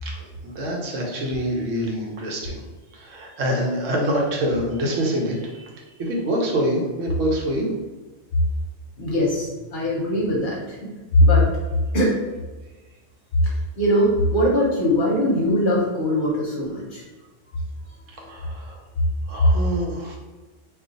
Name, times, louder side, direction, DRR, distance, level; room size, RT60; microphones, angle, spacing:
voice 1, 0.0-2.6 2.9-7.7 18.2-18.8 19.3-20.2, equal, 85° right, -1 dB, 1.1 m, -26 dB
voice 2, 9.0-10.8 11.2-11.5 11.9-12.2 13.4-17.0, left 1 dB, 50° left, -3 dB, 0.8 m, -20 dB
2.4 x 2.4 x 3.8 m, 1.2 s
omnidirectional pair, 1.3 m